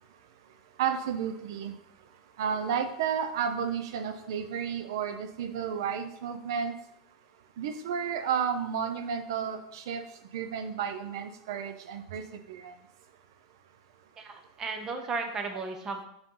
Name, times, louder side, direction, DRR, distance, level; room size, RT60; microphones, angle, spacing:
voice 1, 0.8-1.7 2.4-6.7 7.6-10.0 10.3-12.2 12.5-12.7, right 7 dB, 75° right, 8 dB, 0.7 m, -32 dB
voice 2, 14.2-16.0, right 4 dB, 20° right, 5 dB, 0.8 m, -35 dB
7.6 x 4.4 x 3.9 m, 0.76 s
supercardioid pair, 155°, 2 cm